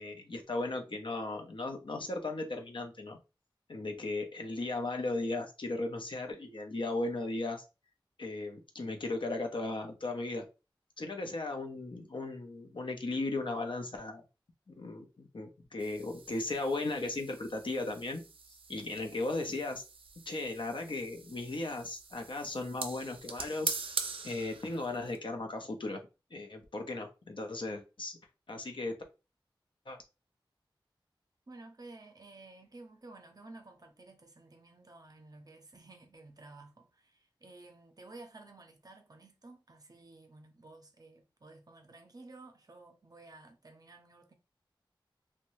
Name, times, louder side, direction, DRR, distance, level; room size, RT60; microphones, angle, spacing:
voice 1, 0.0-3.2 3.7-7.6 8.2-10.5 11.0-14.2 14.7-18.2 18.7-19.8 20.3-23.9 24.2-26.0 26.3-28.2 28.5-28.9 29.9-30.0, left 2 dB, 65° left, 0.6 m, -36 dB
sound 1, 15.8-25.2, right 4 dB, 90° right, 0.4 m, -43 dB
voice 2, 31.5-44.3, right 2 dB, 45° right, 0.6 m, -53 dB
2.6 x 2.2 x 3.0 m
wide cardioid pair, 40°, 9 cm